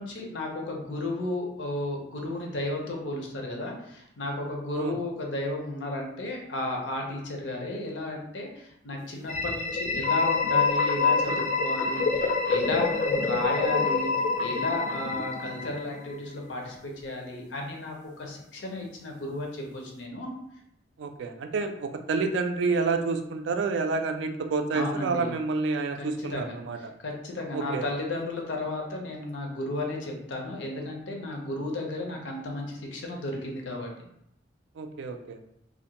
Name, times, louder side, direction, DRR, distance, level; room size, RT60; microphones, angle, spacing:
voice 1, 0.0-14.1 14.4-20.3 24.7-25.3 25.9-33.9, left 1 dB, 90° left, 1 dB, 0.6 m, -33 dB
sound 1, 9.2-16.0, left 4 dB, 40° left, 0.3 m, -26 dB
voice 2, 21.0-26.8 27.5-27.8 34.8-35.4, right 4 dB, 80° right, 6 dB, 0.3 m, -29 dB
2.5 x 2.1 x 2.8 m, 0.76 s
head